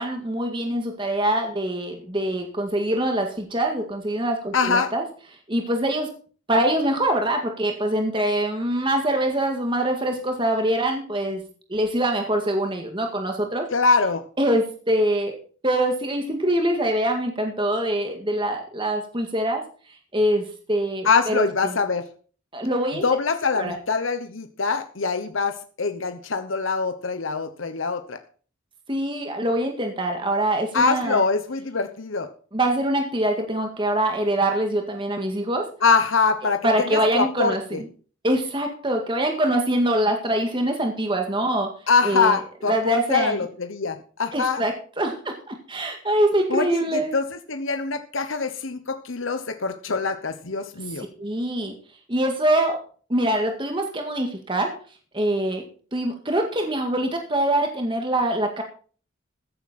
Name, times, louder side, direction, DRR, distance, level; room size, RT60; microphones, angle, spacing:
voice 1, 0.0-5.0 5.5-6.1 6.5-11.4 11.7-13.7 14.4-15.4 15.6-19.6 20.1-21.7 22.5-23.0 23.6-23.8 28.9-31.2 32.5-35.7 36.6-37.9 38.2-41.7 42.0-42.4 42.7-43.4 44.3-47.1 51.2-51.7 52.1-52.8 53.1-54.7 55.1-55.6 55.9-58.6, right 1 dB, 25° right, 3 dB, 1.9 m, -24 dB
voice 2, 4.5-4.9 13.7-14.2 21.0-22.0 23.0-28.2 30.7-32.3 35.8-37.8 41.9-44.6 46.5-51.1, left 4 dB, 75° left, 8 dB, 1.1 m, -24 dB
15.0 x 10.0 x 4.3 m, 0.41 s
head